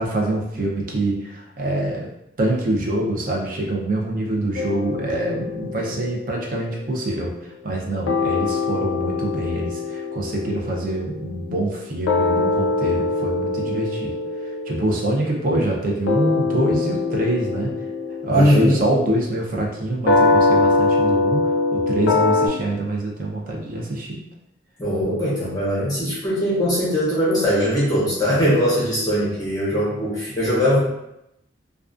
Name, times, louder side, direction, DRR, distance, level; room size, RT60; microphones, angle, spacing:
voice 1, 0.0-2.1 2.4-7.3 7.6-14.1 14.7-17.7 18.2-21.4 21.7-24.2, right 1 dB, 45° right, -2 dB, 0.5 m, -25 dB
sound 1, 4.6-7.8 8.1-22.5, left 3 dB, 90° left, 0.3 m, -24 dB
voice 2, 18.3-18.8 24.8-30.8, equal, 20° left, -7 dB, 0.6 m, -20 dB
2.3 x 2.3 x 2.4 m, 0.83 s
head